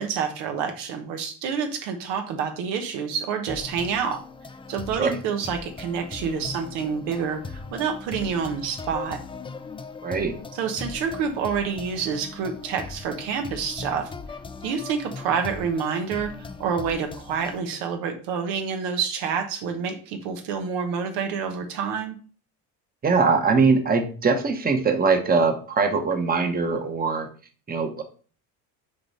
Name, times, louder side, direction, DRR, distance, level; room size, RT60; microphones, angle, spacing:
voice 1, 0.0-4.2 4.7-7.4 7.7-9.2 10.5-14.1 14.6-22.2, right 6 dB, 85° right, 5 dB, 1.2 m, -28 dB
sound 1, 3.5-17.6, left 4 dB, 15° left, 0.3 m, -39 dB
voice 2, 10.0-10.3 23.0-27.3 27.7-28.0, right 4 dB, 20° right, 5 dB, 0.9 m, -22 dB
6.7 x 3.7 x 4.1 m, 0.40 s
cardioid pair, 110°, 41 cm